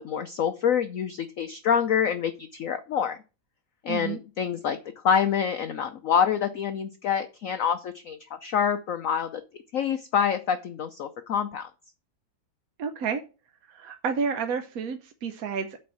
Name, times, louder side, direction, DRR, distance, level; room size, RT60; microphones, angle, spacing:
voice 1, 0.0-3.2 3.8-4.8 5.0-9.4 9.7-11.7, left 8 dB, 70° left, 8 dB, 0.8 m, -26 dB
voice 2, 12.8-13.2 13.7-15.8, right 6 dB, 60° right, 7 dB, 1.0 m, -30 dB
8.5 x 4.4 x 7.1 m, 0.32 s
omnidirectional pair, 2.1 m